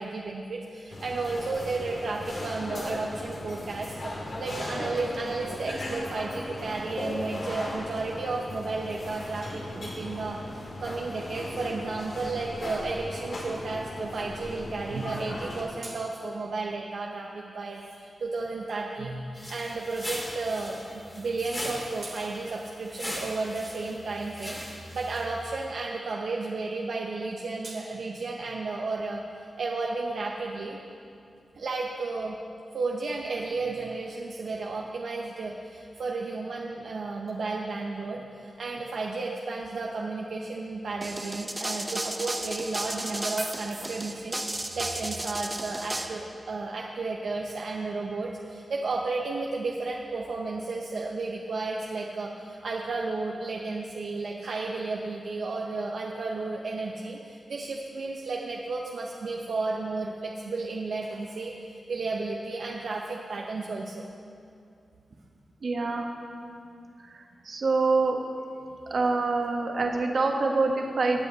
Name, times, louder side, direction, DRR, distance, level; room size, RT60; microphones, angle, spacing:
voice 1, 0.0-4.1 4.4-10.4 10.8-29.2 29.6-30.8 31.5-32.4 32.7-61.5 61.9-64.0, right 3 dB, 70° right, -2 dB, 0.9 m, -33 dB
sound 1, 0.9-15.6, left 1 dB, 60° left, 2.0 m, -37 dB
sound 2, 19.3-25.5, equal, 20° left, 2.3 m, -39 dB
sound 3, 41.0-46.1, right 1 dB, 15° right, 0.8 m, -33 dB
voice 2, 65.6-66.1 67.4-68.2 68.9-71.2, right 3 dB, 55° right, 1 dB, 1.4 m, -25 dB
20.0 x 8.4 x 4.0 m, 2.5 s
wide cardioid pair, 125°, 0 cm